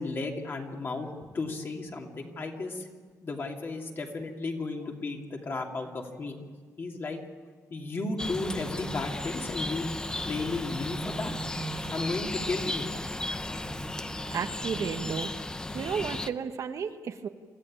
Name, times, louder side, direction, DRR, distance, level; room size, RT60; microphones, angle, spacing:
voice 1, 0.0-2.9 3.2-6.4 6.8-7.2 7.7-11.3 11.9-12.9, left 3 dB, 35° left, 1 dB, 2.8 m, -34 dB
sound 1, 8.2-16.3, left 2 dB, 10° left, 0.7 m, -35 dB
sound 2, 9.7-15.3, right 4 dB, 35° right, 1.1 m, -44 dB
voice 2, 14.3-15.3 15.7-17.3, right 6 dB, 60° right, 7 dB, 1.3 m, -33 dB
27.0 x 15.0 x 8.9 m, 1.5 s
cardioid pair, 145°, 6 cm